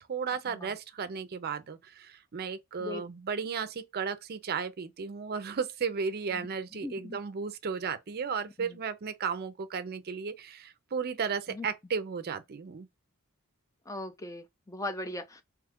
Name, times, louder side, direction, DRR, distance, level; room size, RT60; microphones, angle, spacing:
voice 1, 0.1-12.9, right 6 dB, 45° right, 0.5 m, -34 dB
voice 2, 6.8-7.2 8.6-8.7 11.5-11.7 13.9-15.4, left 2 dB, 15° left, 0.4 m, -38 dB
2.9 x 2.3 x 3.5 m
head